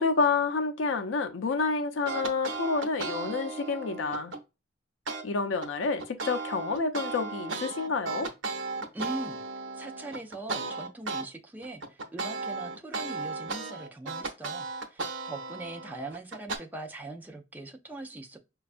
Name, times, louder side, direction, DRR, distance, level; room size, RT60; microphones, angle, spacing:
voice 1, 0.0-4.3 5.2-8.3, left 4 dB, 75° left, 0.5 m, -29 dB
sound 1, 2.1-4.4 5.1-5.2 5.6-11.3 11.6-16.6, right 3 dB, 80° right, 0.7 m, -35 dB
voice 2, 8.9-9.4 9.7-18.4, right 2 dB, 10° right, 0.4 m, -41 dB
5.0 x 2.2 x 2.4 m
head